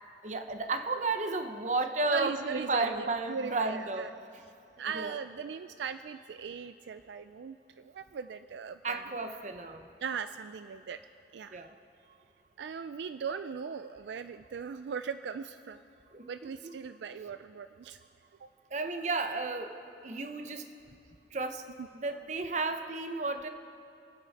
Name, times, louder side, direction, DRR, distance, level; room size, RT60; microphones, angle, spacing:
voice 1, 0.2-4.1 4.9-5.1 8.8-9.9 11.5-11.7 16.1-16.3 16.6-16.7 18.7-19.8 20.0-20.6 21.3-21.6 21.9-23.5, right 3 dB, 45° right, 7 dB, 0.9 m, -33 dB
voice 2, 2.1-4.1 4.8-9.1 10.0-11.0 11.3-11.7 12.6-15.8 16.2-18.0 18.4-18.5 21.8-21.9, right 6 dB, 80° right, 11 dB, 0.4 m, -39 dB
27.5 x 9.4 x 4.2 m, 2.5 s
head